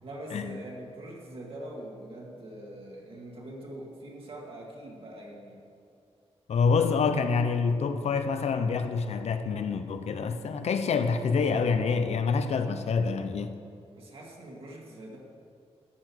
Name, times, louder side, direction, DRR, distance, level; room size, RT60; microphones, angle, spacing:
voice 1, 0.0-5.6 13.9-15.2, right 1 dB, 60° right, -2 dB, 2.1 m, -43 dB
voice 2, 6.5-13.5, left 5 dB, 85° left, 8 dB, 0.8 m, -27 dB
12.5 x 8.8 x 6.3 m, 2.4 s
wide cardioid pair, 160°, 11 cm